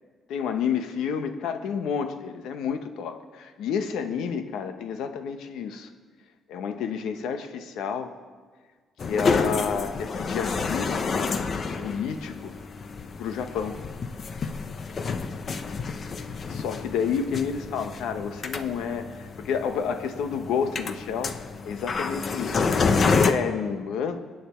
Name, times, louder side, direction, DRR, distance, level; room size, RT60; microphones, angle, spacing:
voice 1, 0.3-5.9 6.5-8.1 9.1-11.0 11.8-12.5 13.2-13.8 16.4-24.2, left 6 dB, 85° left, 8 dB, 1.1 m, -30 dB
sound 1, 9.0-23.3, left 4 dB, 45° left, 0.9 m, -29 dB
22.5 x 9.3 x 4.5 m, 1.5 s
cardioid pair, 90°, 0 cm